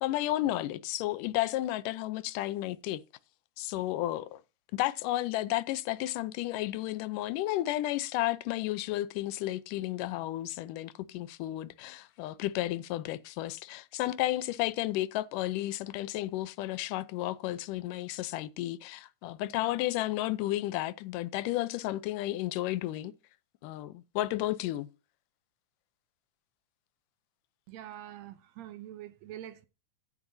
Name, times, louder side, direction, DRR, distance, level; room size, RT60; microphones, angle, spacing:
voice 1, 0.0-3.0 3.6-4.4 4.7-23.1 23.6-24.9, left 15 dB, 85° left, 2.3 m, -32 dB
voice 2, 27.7-29.7, right 12 dB, 70° right, 1.8 m, -45 dB
14.5 x 11.0 x 2.7 m
omnidirectional pair, 3.7 m